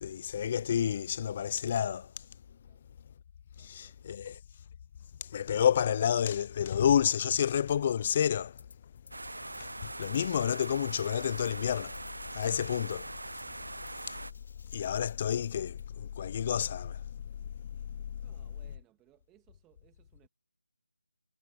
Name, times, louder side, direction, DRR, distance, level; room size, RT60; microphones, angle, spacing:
voice 1, 0.0-2.1 3.6-4.4 5.2-8.6 9.6-12.0 12.3-13.1 14.1-14.2 14.7-17.0 17.9-18.0, left 9 dB, 25° left, 0.4 m, -29 dB
voice 2, 3.5-4.3 18.2-20.3, right 16 dB, 10° right, 1.8 m, -66 dB
sound 1, 8.6-9.2 9.4-15.9, left 4 dB, 55° left, 5.4 m, -60 dB
sound 2, 9.1-14.3, right 2 dB, 85° right, 0.3 m, -42 dB
figure-of-eight pair, 165°, 0 cm